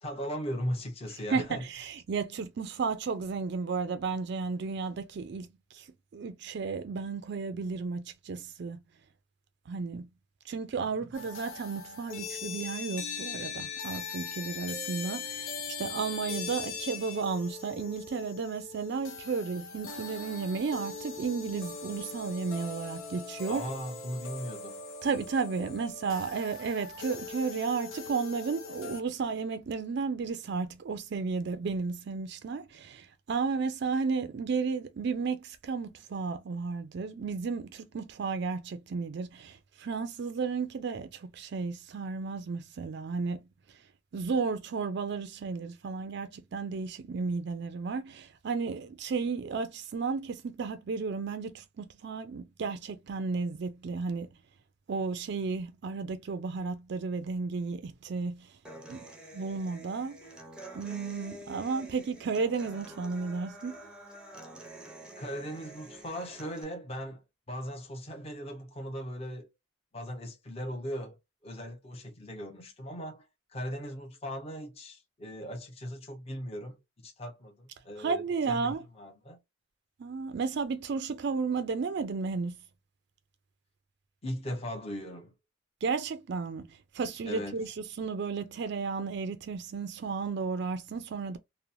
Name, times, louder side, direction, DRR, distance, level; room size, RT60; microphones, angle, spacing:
voice 1, 0.0-1.6 10.8-10.9 23.5-24.8 65.2-67.2 67.5-69.5 69.9-73.2 73.5-78.2 78.5-79.4 84.2-85.3 87.3-87.7, equal, 30° left, 0.8 m, -38 dB
voice 2, 1.3-5.9 6.1-8.8 9.7-10.1 10.5-23.6 25.0-43.4 44.1-54.3 54.9-58.5 58.9-59.0 59.3-60.2 60.7-63.8 78.0-78.8 80.0-82.6 85.8-91.4, right 4 dB, 55° right, 0.4 m, -33 dB
sound 1, 11.1-29.0, left 5 dB, 85° left, 0.6 m, -41 dB
Human voice / Acoustic guitar, 58.6-66.6, right 1 dB, 5° right, 0.6 m, -48 dB
2.9 x 2.1 x 2.5 m
head